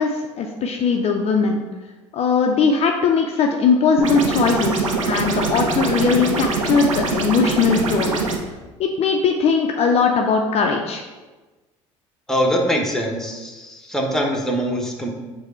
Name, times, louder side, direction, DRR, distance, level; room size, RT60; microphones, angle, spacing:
voice 1, 0.0-1.6 2.1-8.2 8.8-11.0, left 5 dB, 40° left, 3 dB, 0.4 m, -19 dB
sound 1, 4.0-8.4, right 3 dB, 85° right, 0.4 m, -23 dB
voice 2, 12.3-15.1, equal, 5° left, 0 dB, 0.8 m, -23 dB
4.8 x 2.1 x 4.3 m, 1.2 s
hypercardioid pair, 65°, 16 cm